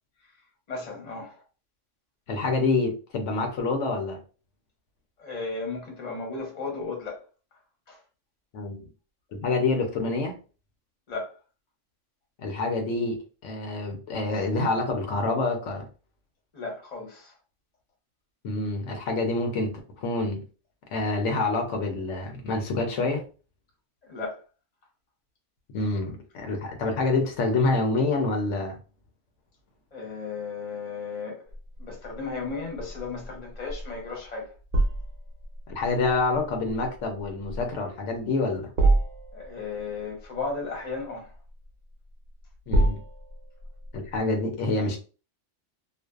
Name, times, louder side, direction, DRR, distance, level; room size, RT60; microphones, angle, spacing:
voice 1, 0.7-1.4 5.2-7.2 7.9-8.0 11.1-11.3 16.5-17.3 24.1-24.4 29.9-31.4 31.8-34.5 39.3-41.3, left 4 dB, 40° left, 0.8 m, -35 dB
voice 2, 2.3-4.2 8.5-8.9 9.3-10.3 12.4-15.9 18.4-20.4 20.9-23.2 25.7-28.8 35.7-38.7 42.7-43.0 43.9-45.0, left 3 dB, 80° left, 1.0 m, -27 dB
sound 1, 31.5-44.2, right 2 dB, 75° right, 0.9 m, -30 dB
2.5 x 2.2 x 2.3 m
omnidirectional pair, 1.2 m